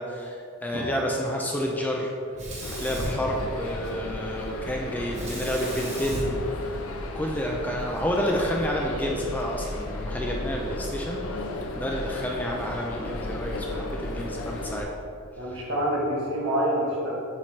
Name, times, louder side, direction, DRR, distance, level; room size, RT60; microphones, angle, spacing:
voice 1, 0.0-2.1 2.8-6.4 7.1-11.2 11.7-14.9, equal, 10° left, -1 dB, 0.4 m, -29 dB
Sink (filling or washing), 2.3-4.0 5.1-7.4, right 1 dB, 30° right, 1.1 m, -35 dB
sound 1, 2.6-14.8, left 2 dB, 80° left, 0.6 m, -34 dB
voice 2, 15.4-17.1, equal, 65° right, -5 dB, 1.5 m, -27 dB
7.2 x 4.3 x 3.2 m, 2.6 s
head